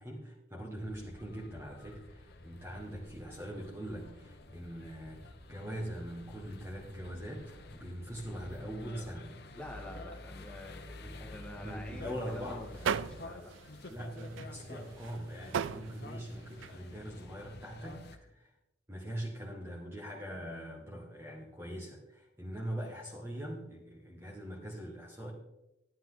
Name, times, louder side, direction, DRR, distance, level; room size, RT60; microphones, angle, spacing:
voice 1, 0.0-9.3 11.0-11.2 11.6-12.6 13.9-18.5 18.9-25.3, equal, 15° right, -3 dB, 1.4 m, -42 dB
sound 1, 0.8-18.2, left 2 dB, 55° left, 1.0 m, -50 dB
voice 2, 8.6-9.1 9.5-13.5, left 1 dB, 5° left, -1 dB, 1.9 m, -47 dB
sound 2, 12.0-16.8, right 7 dB, 75° right, 0.4 m, -38 dB
11.5 x 9.9 x 3.9 m, 0.91 s
head